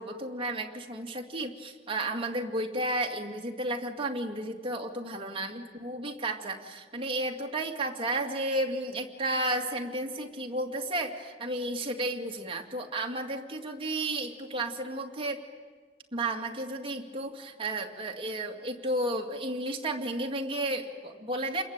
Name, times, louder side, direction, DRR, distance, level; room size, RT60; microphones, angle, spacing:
voice 1, 0.0-15.4 16.1-21.6, right 1 dB, 30° right, 3 dB, 2.4 m, -33 dB
29.0 x 22.0 x 8.9 m, 1.5 s
head